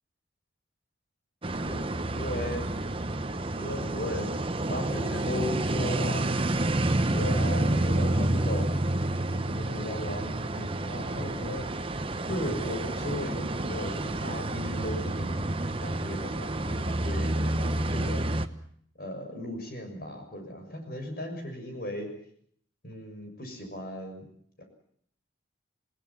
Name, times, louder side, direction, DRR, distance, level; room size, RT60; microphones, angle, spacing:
sound 1, 1.4-18.5, right 1 dB, 30° right, 1.1 m, -29 dB
voice 1, 1.7-2.7 3.5-4.4 4.7-6.3 7.1-8.7 9.2-11.7 12.2-15.5 15.8-18.2 19.0-22.1 22.8-24.2 24.6-24.7, left 1 dB, 50° left, 5 dB, 6.7 m, -37 dB
27.5 x 18.5 x 7.3 m, 0.64 s
head